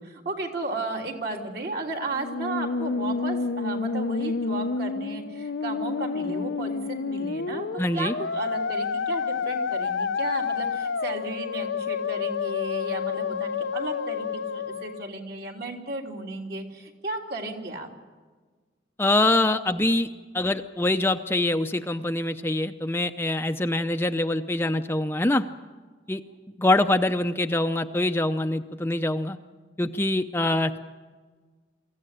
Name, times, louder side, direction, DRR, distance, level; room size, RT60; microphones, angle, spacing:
voice 1, 0.0-7.7 7.9-17.9, right 2 dB, 55° right, 1 dB, 3.4 m, -34 dB
Musical instrument, 2.1-15.1, left 5 dB, 85° left, 0.6 m, -29 dB
voice 2, 7.8-8.1 19.0-20.1 20.3-25.4 26.1-26.2 26.6-29.4 29.8-30.8, left 2 dB, 15° left, 7 dB, 0.6 m, -24 dB
24.0 x 15.5 x 10.0 m, 1.4 s
head